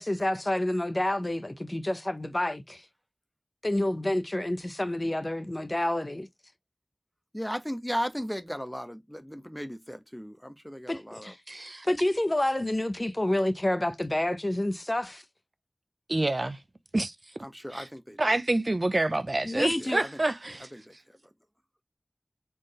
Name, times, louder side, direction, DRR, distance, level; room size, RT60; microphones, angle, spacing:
voice 1, 0.0-2.8 3.6-6.3 10.9-11.4 11.8-15.2 19.4-20.0, left 1 dB, 35° left, 0.8 m, -28 dB
voice 2, 7.3-11.3 17.4-18.2 19.8-20.1 20.7-20.9, equal, 5° left, 0.9 m, -36 dB
voice 3, 11.5-11.9 16.1-16.6 16.9-17.1 17.7-17.9 18.2-20.7, right 2 dB, 50° right, 0.6 m, -27 dB
4.3 x 3.7 x 3.1 m
wide cardioid pair, 45°, 0 cm